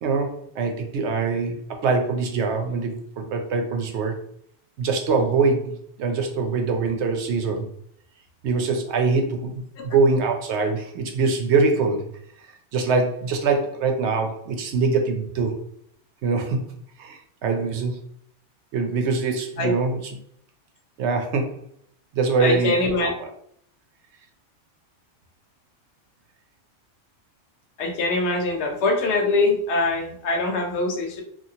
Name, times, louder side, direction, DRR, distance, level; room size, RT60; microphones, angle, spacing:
voice 1, 0.0-4.1 4.8-7.7 8.4-12.1 12.7-15.6 16.2-16.6 17.0-18.0 18.7-20.0 21.0-21.6 22.1-22.7, right 4 dB, 70° right, 4 dB, 0.9 m, -23 dB
voice 2, 22.4-23.1 27.8-31.2, left 2 dB, 70° left, 2 dB, 0.9 m, -23 dB
2.9 x 2.4 x 2.7 m, 0.66 s
omnidirectional pair, 1.2 m